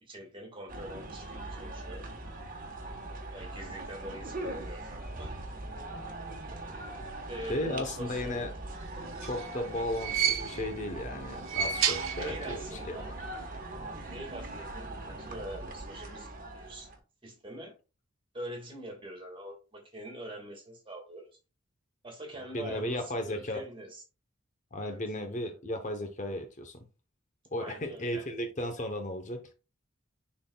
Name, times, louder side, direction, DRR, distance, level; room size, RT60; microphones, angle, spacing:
voice 1, 0.0-2.1 3.3-5.6 7.3-8.4 12.2-13.1 14.1-16.9 17.2-17.7 18.3-21.3 22.0-24.0 24.8-25.0 27.6-28.2, right 1 dB, 25° right, 1.9 m, -44 dB
sound 1, 0.7-17.0, right 2 dB, 40° right, 1.2 m, -41 dB
voice 2, 7.5-8.5 9.2-13.0 22.5-23.6 24.7-26.9 27.5-29.4, left 1 dB, 35° left, 0.8 m, -35 dB
sound 2, 8.9-10.8 11.3-12.7 13.0-13.1 14.2-14.3, right 9 dB, 75° right, 1.0 m, -32 dB
10.5 x 4.0 x 2.3 m
head